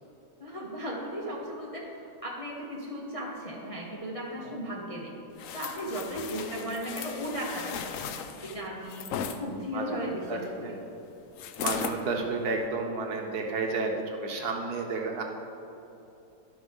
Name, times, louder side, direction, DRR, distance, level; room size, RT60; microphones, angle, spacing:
voice 1, 0.4-1.9 2.2-5.2 5.5-9.1 9.4-10.8, equal, 25° left, -4 dB, 0.8 m, -36 dB
sound 1, 5.4-9.4 11.4-12.0 12.5-12.7, left 8 dB, 90° left, 0.7 m, -36 dB
voice 2, 6.3-6.7 9.3-9.4 9.7-10.8 11.6-15.2, right 3 dB, 65° right, 2 dB, 1.2 m, -32 dB
11.0 x 6.1 x 5.2 m, 2.9 s
omnidirectional pair, 2.0 m